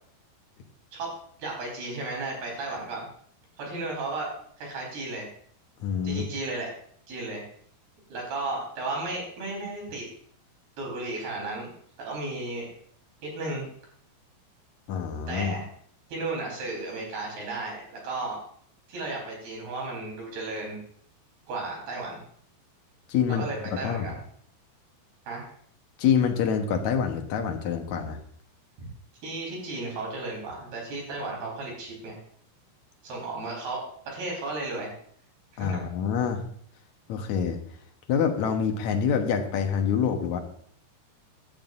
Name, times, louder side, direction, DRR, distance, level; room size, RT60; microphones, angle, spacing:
voice 1, 0.9-3.1 3.6-5.3 6.0-6.7 7.1-7.4 8.1-10.1 10.8-11.7 12.0-12.7 13.2-13.7 15.3-15.7 16.1-18.4 18.9-20.8 21.5-22.2 23.3-24.1 25.3-25.5 28.8-28.9 29.2-32.2 33.0-34.9 35.5-35.8, right 2 dB, 60° right, -1 dB, 6.4 m, -34 dB
voice 2, 5.8-6.2 14.9-15.6 23.1-23.4 23.8-24.1 26.0-28.2 35.6-36.4 37.1-37.6 38.1-40.4, left 7 dB, 70° left, 4 dB, 1.8 m, -26 dB
16.5 x 12.0 x 2.7 m, 0.62 s
omnidirectional pair, 5.0 m